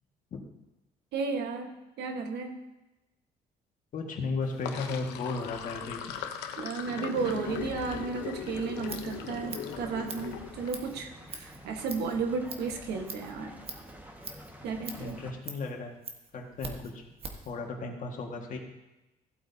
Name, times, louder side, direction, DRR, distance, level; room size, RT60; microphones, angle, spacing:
voice 1, 1.1-1.7 2.0-2.5 6.6-13.6 14.6-15.2, right 5 dB, 75° right, 4 dB, 1.4 m, -33 dB
voice 2, 3.9-6.0 15.0-16.0 16.3-17.0 17.5-18.6, left 3 dB, 50° left, 2 dB, 1.8 m, -35 dB
Sink (filling or washing), 4.4-10.7, left 9 dB, 90° left, 0.9 m, -39 dB
sound 1, 7.2-15.3, equal, 10° right, 1.7 m, -48 dB
Scissors, 8.6-17.5, right 4 dB, 35° right, 1.4 m, -45 dB
15.5 x 8.1 x 2.8 m, 0.99 s
cardioid pair, 110°, 17 cm